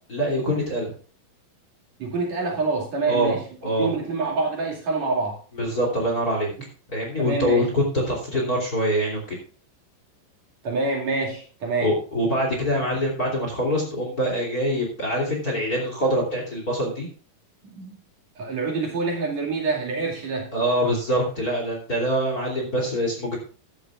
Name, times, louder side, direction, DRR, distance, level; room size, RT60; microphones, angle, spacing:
voice 1, 0.1-0.9 3.1-3.4 3.6-3.9 5.5-6.5 6.9-9.4 11.8-17.1 20.5-23.4, equal, 25° left, 0 dB, 3.1 m, -24 dB
voice 2, 2.0-3.4 3.8-5.4 7.2-7.6 10.6-11.9 17.6-18.0 18.4-20.5, right 3 dB, 50° right, 0 dB, 3.5 m, -26 dB
14.5 x 11.0 x 2.4 m, 0.39 s
omnidirectional pair, 4.3 m